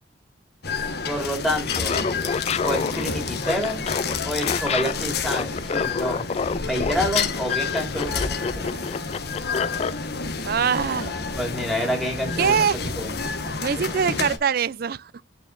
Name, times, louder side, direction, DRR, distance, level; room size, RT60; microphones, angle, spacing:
sound 1, 0.6-14.4, left 4 dB, 60° left, 1.3 m, -29 dB
voice 1, 1.0-2.0 2.6-3.9 4.2-6.3 6.6-8.3 8.5-8.7 11.3-12.6 13.0-13.2, equal, ahead, 2.8 m, -28 dB
Laughter, 1.6-10.0, left 5 dB, 35° left, 0.3 m, -28 dB
voice 2, 10.4-11.1 12.4-12.8 13.6-15.2, right 7 dB, 55° right, 0.4 m, -23 dB
9.2 x 4.9 x 2.6 m
head